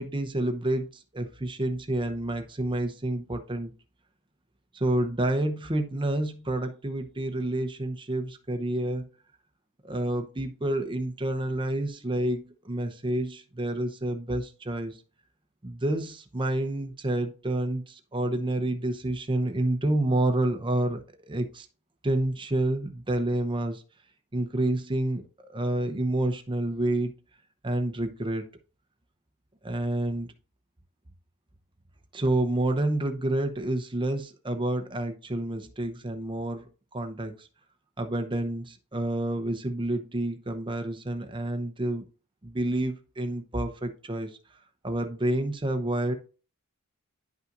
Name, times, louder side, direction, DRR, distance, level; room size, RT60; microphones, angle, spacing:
voice 1, 0.0-3.8 4.7-9.1 9.8-15.0 15.6-21.7 22.0-23.8 24.3-25.2 25.5-27.1 27.6-28.5 29.6-30.3 32.1-36.7 36.9-37.5 38.0-42.0 42.4-44.4 44.8-46.1, right 1 dB, 20° right, 6 dB, 0.8 m, -29 dB
10.5 x 5.6 x 2.5 m, 0.37 s
head